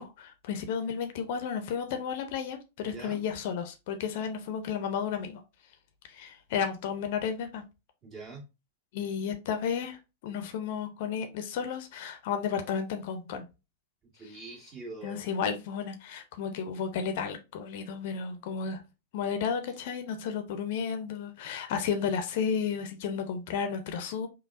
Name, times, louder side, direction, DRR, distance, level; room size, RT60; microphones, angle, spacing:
voice 1, 0.0-5.4 6.1-7.6 8.9-13.4 15.0-18.8 19.1-24.3, left 7 dB, 55° left, 0.6 m, -33 dB
voice 2, 2.8-3.2 8.0-8.4 14.1-15.2, right 3 dB, 30° right, 1.8 m, -44 dB
5.3 x 2.2 x 2.5 m
figure-of-eight pair, 95°, 0 cm